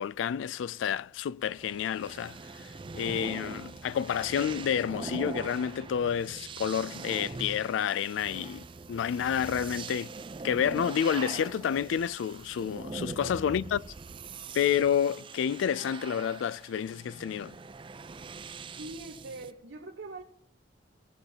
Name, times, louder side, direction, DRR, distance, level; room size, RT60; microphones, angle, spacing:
voice 1, 0.0-2.7 2.9-10.1 10.4-13.8 14.5-17.5, left 8 dB, 90° left, 0.3 m, -29 dB
sound 1, 1.4-19.5, right 4 dB, 25° right, 0.4 m, -42 dB
voice 2, 13.2-13.6 18.7-20.2, right 2 dB, 90° right, 1.1 m, -43 dB
18.5 x 8.0 x 2.8 m
head